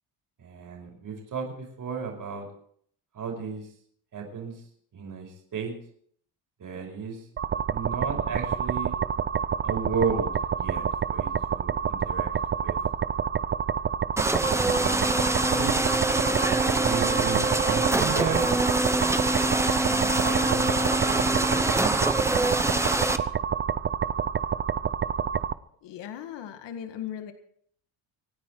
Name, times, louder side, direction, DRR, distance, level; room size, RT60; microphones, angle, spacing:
voice 1, 0.4-2.5 3.1-3.7 4.1-4.6 4.9-5.7 6.6-7.2 7.7-8.9 9.6-12.3 12.6-12.8 14.5-15.7 16.9-18.5 19.8-22.3, right 5 dB, 45° right, 1 dB, 5.4 m, -34 dB
sound 1, 7.4-25.5, right 7 dB, 25° right, 0.5 m, -28 dB
sound 2, 14.2-23.2, right 2 dB, 5° right, 1.0 m, -25 dB
voice 2, 25.8-27.3, left 10 dB, 65° left, 7 dB, 1.8 m, -37 dB
26.0 x 9.7 x 4.6 m, 0.62 s
cardioid pair, 120°, 45 cm